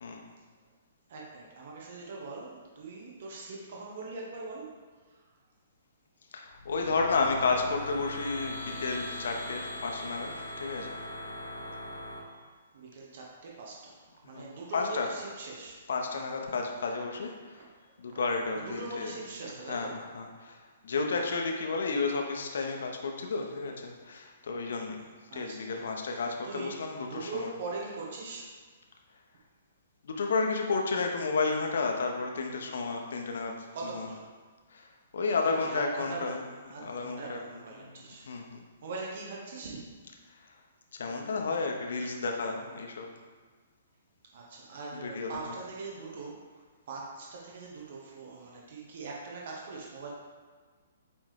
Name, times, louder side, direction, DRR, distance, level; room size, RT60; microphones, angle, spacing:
voice 1, 1.1-4.8 5.1-5.2 6.8-6.9 12.7-15.9 18.1-18.2 18.5-20.0 21.1-21.3 25.3-28.6 33.7-34.3 35.4-38.3 38.8-39.9 44.3-50.1, right 3 dB, 50° right, -2 dB, 0.9 m, -42 dB
voice 2, 6.3-10.3 10.6-11.0 14.2-15.1 15.9-17.6 18.0-19.1 19.7-25.0 25.3-27.5 30.0-33.7 33.9-34.1 34.7-36.4 36.8-37.4 37.8-38.6 40.4-40.5 40.9-43.1 44.9-45.6, left 4 dB, 55° left, 2 dB, 0.8 m, -32 dB
sound 1, 6.5-12.2, left 1 dB, 85° left, 1.0 m, -40 dB
8.5 x 3.4 x 3.3 m, 1.5 s
figure-of-eight pair, 120°, 0 cm